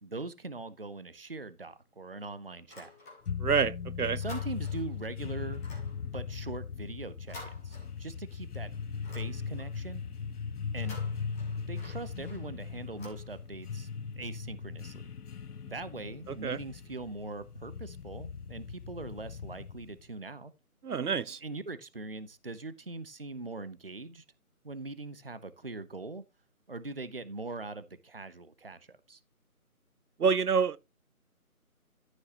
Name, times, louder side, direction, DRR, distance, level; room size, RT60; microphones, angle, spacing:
voice 1, 0.0-2.9 4.2-5.6 6.0-8.7 9.1-10.0 10.7-11.0 11.7-13.9 14.2-15.0 15.7-20.5 21.4-24.2 24.6-26.2 26.7-29.2, right 3 dB, 40° right, 0.7 m, -41 dB
sound 1, 2.6-3.6 3.9-5.0 5.5-8.4 8.7-9.9 10.6-13.8, left 2 dB, 10° left, 2.5 m, -52 dB
sound 2, 3.3-20.0, left 6 dB, 85° left, 0.7 m, -39 dB
voice 2, 3.4-4.2 16.4-16.6 20.8-21.4 30.2-30.8, right 6 dB, 80° right, 0.7 m, -27 dB
14.0 x 6.3 x 2.9 m
figure-of-eight pair, 165°, 45 cm